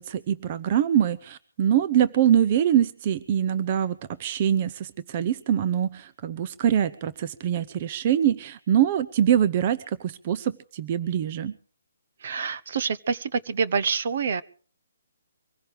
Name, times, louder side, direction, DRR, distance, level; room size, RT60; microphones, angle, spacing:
voice 1, 0.0-11.5, right 10 dB, 30° right, 13 dB, 0.7 m, -24 dB
voice 2, 12.2-14.4, right 5 dB, 50° right, 16 dB, 1.0 m, -27 dB
24.5 x 16.0 x 3.4 m, 0.43 s
hypercardioid pair, 165°, 0 cm